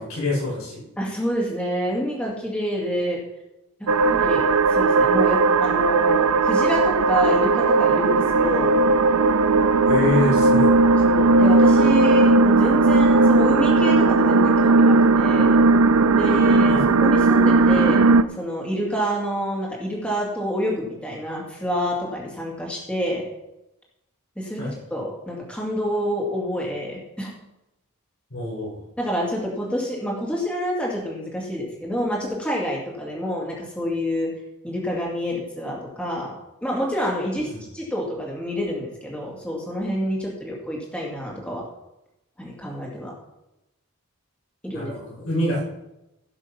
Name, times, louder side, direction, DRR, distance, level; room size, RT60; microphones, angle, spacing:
voice 1, 0.0-0.8 9.8-10.7 16.7-16.9 24.6-24.8 28.3-28.8 37.4-37.6 44.7-45.6, left 2 dB, 75° left, -4 dB, 5.4 m, -25 dB
voice 2, 1.0-3.2 3.8-8.8 11.0-15.6 16.1-18.1 18.4-23.2 24.4-27.3 29.0-34.3 34.6-36.3 36.6-41.7 42.4-43.1 44.6-44.9, equal, 5° left, -3 dB, 2.2 m, -28 dB
sound 1, 3.9-18.2, right 3 dB, 80° right, 0.6 m, -17 dB
16.0 x 6.3 x 5.7 m, 0.93 s
head